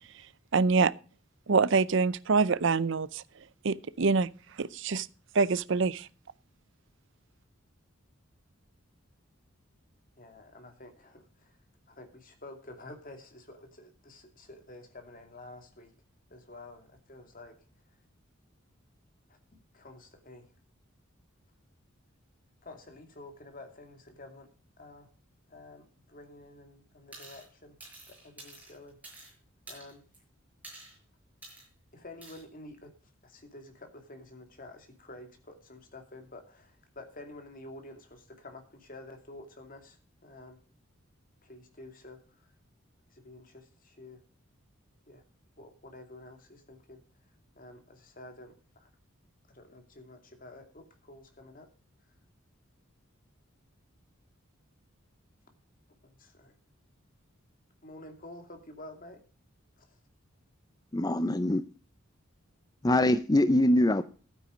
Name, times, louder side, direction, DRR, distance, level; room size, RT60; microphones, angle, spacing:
voice 1, 0.5-0.9 1.5-3.2 3.6-4.3 4.6-5.1 5.3-6.1, right 4 dB, 60° right, 0.6 m, -25 dB
voice 2, 10.2-11.6 11.9-15.9 16.3-17.5 19.3-19.4 19.7-20.5 22.6-24.5 24.8-25.1 25.5-27.8 28.1-29.0 29.7-30.0 31.9-32.9 33.2-40.6 41.4-42.5 43.1-44.2 45.1-45.2 45.6-47.0 47.6-48.9 49.5-51.7 56.0-56.5 57.8-59.2 59.8-60.0, left 2 dB, 40° left, 2.6 m, -50 dB
sound 1, 27.1-27.5 27.8-29.3 29.7-30.2 30.6-31.0 31.4-31.7 32.2-32.4, right 2 dB, 10° right, 6.7 m, -49 dB
voice 3, 60.9-61.6 62.8-64.0, left 1 dB, 20° left, 0.5 m, -23 dB
12.5 x 9.3 x 5.1 m
head